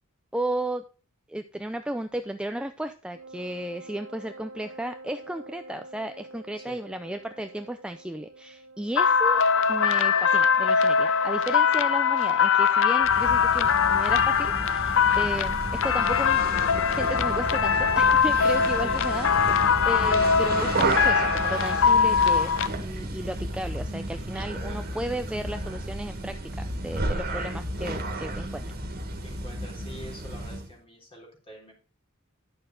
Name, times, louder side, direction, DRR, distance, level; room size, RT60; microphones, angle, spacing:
voice 1, 0.3-0.8 1.3-15.6 15.8-16.6 17.0-19.3 19.9-26.4 26.8-28.8, right 1 dB, 5° right, 8 dB, 0.4 m, -34 dB
Wind instrument woodwind instrument, 3.1-9.8, right 2 dB, 60° right, 0.7 m, -47 dB
sound 1, 9.0-22.7, left 6 dB, 60° left, 0.6 m, -22 dB
sound 2, 13.0-30.7, right 2 dB, 45° right, 1.8 m, -32 dB
voice 2, 29.2-31.7, left 1 dB, 25° left, 1 dB, 3.5 m, -46 dB
10.5 x 6.6 x 3.9 m, 0.37 s
head